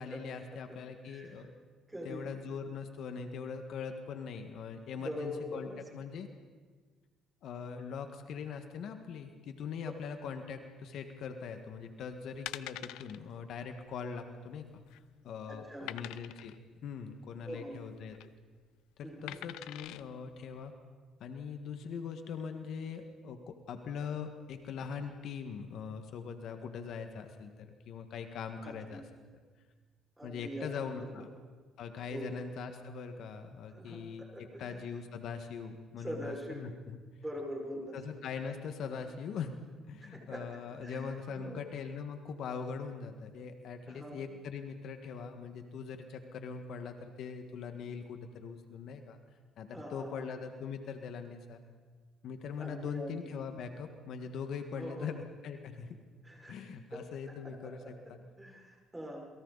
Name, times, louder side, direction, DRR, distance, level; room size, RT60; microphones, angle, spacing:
voice 1, 0.0-1.5 2.0-6.3 7.4-14.8 15.2-16.5 16.8-18.2 19.0-20.7 21.2-29.0 30.2-31.3 31.8-37.0 37.9-39.6 39.9-49.2 49.6-51.6 52.2-56.0 56.5-58.2, left 6 dB, 65° left, 6 dB, 1.7 m, -41 dB
voice 2, 1.1-1.5 1.9-2.4 4.9-5.8 15.5-15.9 17.4-17.8 19.0-19.4 28.6-29.0 30.2-31.1 32.1-32.3 33.7-34.8 36.0-36.7 37.2-38.0 40.0-41.6 43.9-44.2 49.7-50.3 52.6-53.3 54.8-55.1 56.2-56.6 56.9-59.3, equal, 10° right, -1 dB, 5.7 m, -44 dB
sound 1, 11.8-12.0 12.5-13.2 13.5-13.7 13.9-14.0 14.6-15.1 15.9-16.6 17.9-18.3 19.3-20.0 20.6-20.7, left 15 dB, 85° left, 0.6 m, -44 dB
28.0 x 23.5 x 4.1 m, 1.5 s
cardioid pair, 100°, 0 cm